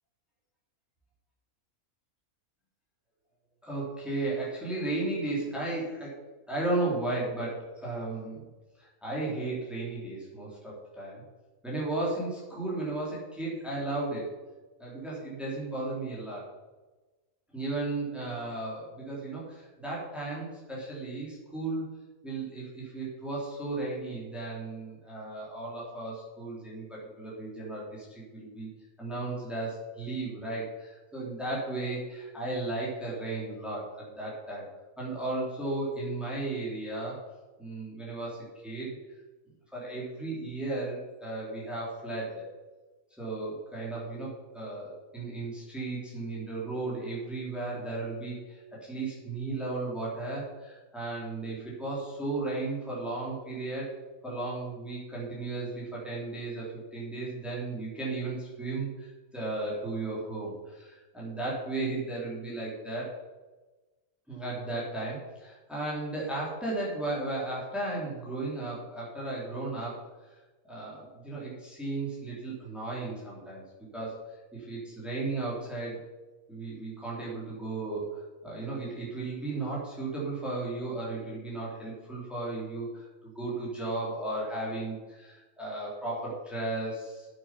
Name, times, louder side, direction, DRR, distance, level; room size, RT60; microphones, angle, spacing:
voice 1, 3.6-6.2 6.5-8.5 8.8-11.2 11.6-14.3 14.8-16.4 17.5-21.8 22.2-28.7 29.0-34.6 35.0-37.2 37.6-39.0 39.7-42.4 43.2-53.9 54.2-63.1 64.3-70.0 70.7-73.6 73.9-74.2 74.5-76.0 76.5-87.3, right 2 dB, ahead, -6 dB, 3.1 m, -35 dB
8.9 x 8.3 x 5.9 m, 1.2 s
omnidirectional pair, 1.5 m